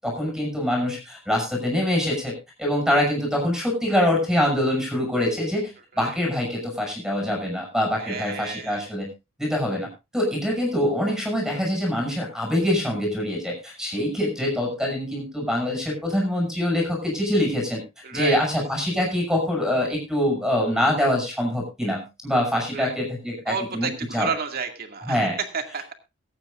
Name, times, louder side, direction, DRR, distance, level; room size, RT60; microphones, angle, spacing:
voice 1, 0.0-5.7 6.0-9.1 9.4-9.9 10.1-17.8 18.1-24.3 25.1-25.4, left 1 dB, 5° right, -2 dB, 6.1 m, -24 dB
voice 2, 8.0-8.9 18.0-18.7 22.7-22.9 23.5-25.2 25.5-25.9, right 5 dB, 50° right, 4 dB, 2.2 m, -31 dB
23.5 x 8.8 x 2.5 m, 0.26 s
head